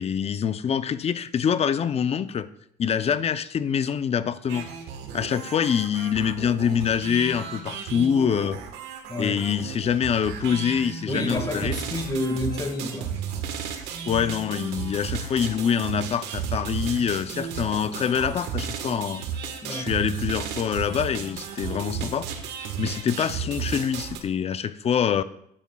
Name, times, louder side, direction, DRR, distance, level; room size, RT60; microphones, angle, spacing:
voice 1, 0.0-2.5 2.8-4.7 5.1-8.6 9.2-11.8 14.1-19.2 19.7-22.3 22.8-25.2, left 8 dB, 35° left, 0.5 m, -25 dB
sound 1, 4.5-24.2, right 7 dB, 90° right, 1.3 m, -34 dB
voice 2, 9.1-9.4 11.1-13.1 19.6-19.9, left 1 dB, 20° left, 1.7 m, -29 dB
12.5 x 9.9 x 2.3 m
cardioid pair, 110°, 17 cm